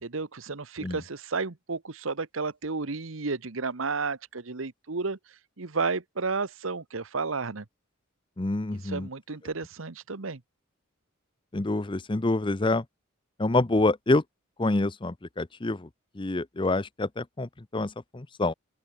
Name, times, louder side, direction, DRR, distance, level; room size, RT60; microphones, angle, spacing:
voice 1, 0.0-5.2 5.6-7.6 8.8-10.4, right 4 dB, 80° right, 1.2 m, -32 dB
voice 2, 8.4-9.1 11.5-12.8 13.4-14.2 14.6-15.9 16.1-18.5, left 2 dB, 25° left, 0.7 m, -27 dB
open air
head